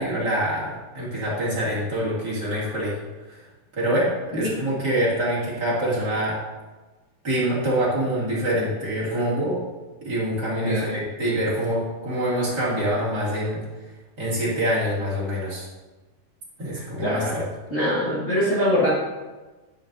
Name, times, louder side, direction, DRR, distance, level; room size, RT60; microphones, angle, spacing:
voice 1, 0.0-3.0 3.8-6.4 7.2-9.6 10.0-13.6 14.2-15.7 16.6-17.4, right 1 dB, 30° right, -8 dB, 2.7 m, -25 dB
voice 2, 4.3-4.7 10.6-11.0 16.7-17.4 17.7-18.9, equal, 60° left, -9 dB, 0.7 m, -24 dB
10.0 x 9.2 x 2.7 m, 1.2 s
omnidirectional pair, 4.2 m